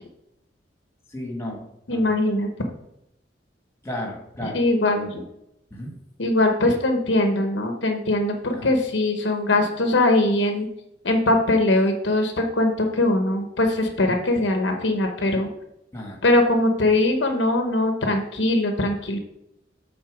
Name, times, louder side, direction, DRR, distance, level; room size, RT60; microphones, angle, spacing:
voice 1, 1.1-2.1 3.8-4.6 5.7-6.0 8.5-8.7 15.9-16.2, left 1 dB, 15° left, 0 dB, 1.7 m, -34 dB
voice 2, 1.9-2.5 4.5-5.2 6.2-10.7 11.0-15.5 16.2-19.2, left 2 dB, 75° left, 4 dB, 0.9 m, -21 dB
7.6 x 4.0 x 5.0 m, 0.81 s
head